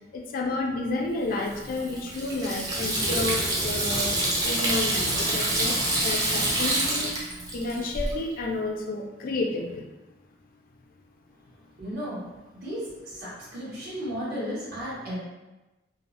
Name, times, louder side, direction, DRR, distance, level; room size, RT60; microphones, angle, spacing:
voice 1, 0.1-5.8 6.0-7.2 7.5-9.9, left 2 dB, 50° left, 2 dB, 0.3 m, -31 dB
Water tap faucet / Sink (filling or washing), 1.4-8.1, right 1 dB, 20° right, 0.5 m, -27 dB
voice 2, 11.8-12.3 12.5-15.1, equal, 60° right, -8 dB, 1.2 m, -34 dB
3.3 x 2.0 x 2.4 m, 1.1 s
head